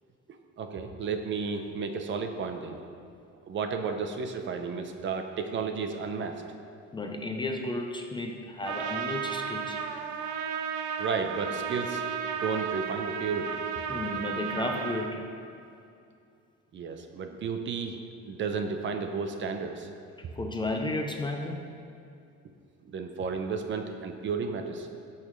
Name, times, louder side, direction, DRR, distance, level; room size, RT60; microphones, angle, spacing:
voice 1, 0.6-2.8 3.5-6.4 11.0-12.0 12.4-13.9 16.7-18.0 18.2-19.9 22.8-24.9, right 5 dB, 40° right, 6 dB, 0.7 m, -33 dB
voice 2, 6.9-9.8 13.9-15.3 20.4-21.6, left 2 dB, 15° left, 2 dB, 0.5 m, -33 dB
Trumpet, 8.6-15.1, right 6 dB, 90° right, 0.7 m, -34 dB
17.0 x 5.8 x 3.1 m, 2.5 s
cardioid pair, 160°, 29 cm